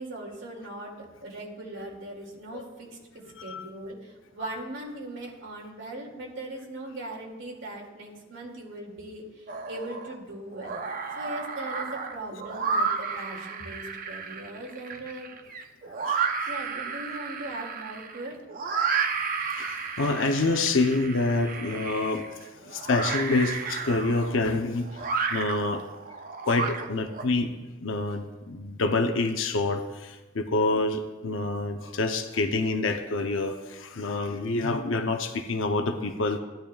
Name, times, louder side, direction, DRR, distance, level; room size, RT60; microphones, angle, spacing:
voice 1, 0.0-2.9 3.4-10.8 11.1-15.5 16.5-18.4 19.6-19.7, right 1 dB, 80° right, -2 dB, 2.3 m, -39 dB
sound 1, 9.5-10.1 10.5-27.2, right 5 dB, 45° right, 0.7 m, -32 dB
voice 2, 19.6-25.0 25.3-25.8 26.4-36.4, left 3 dB, 90° left, 6 dB, 0.7 m, -27 dB
15.5 x 10.5 x 2.3 m, 1.2 s
head